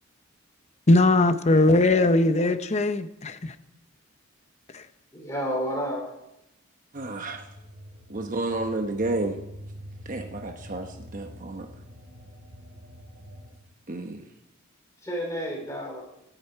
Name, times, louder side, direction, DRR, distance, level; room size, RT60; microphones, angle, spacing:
voice 1, 0.9-3.5 4.7-4.8, left 2 dB, 35° left, 11 dB, 0.8 m, -20 dB
voice 2, 5.1-6.0 15.0-16.0, equal, 15° left, -1 dB, 3.3 m, -30 dB
voice 3, 6.9-7.5 8.1-9.4 10.0-11.7 13.9-14.2, right 2 dB, 40° right, 4 dB, 1.0 m, -31 dB
sound 1, 7.0-13.5, equal, 85° right, 4.8 m, -45 dB
26.0 x 9.0 x 4.6 m, 0.88 s
head